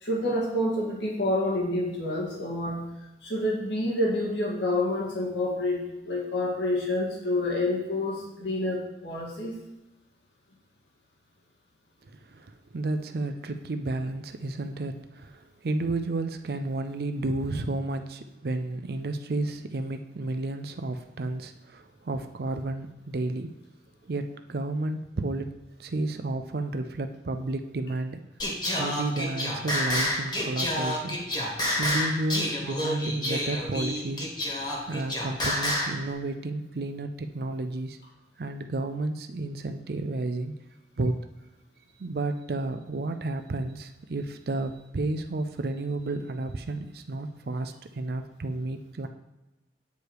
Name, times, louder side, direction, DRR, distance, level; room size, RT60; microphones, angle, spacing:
voice 1, 0.0-2.8 3.2-9.6 28.8-28.9, left 1 dB, 90° left, -3 dB, 1.9 m, -28 dB
voice 2, 12.3-23.5 24.1-25.5 25.8-28.2 28.8-31.2 31.8-34.3 34.9-38.0 38.4-40.5 41.0-41.2 42.0-49.1, right 2 dB, 60° right, 8 dB, 0.5 m, -31 dB
Singing, 28.4-36.0, left 1 dB, 25° left, 1.6 m, -29 dB
8.1 x 4.9 x 4.7 m, 1.0 s
head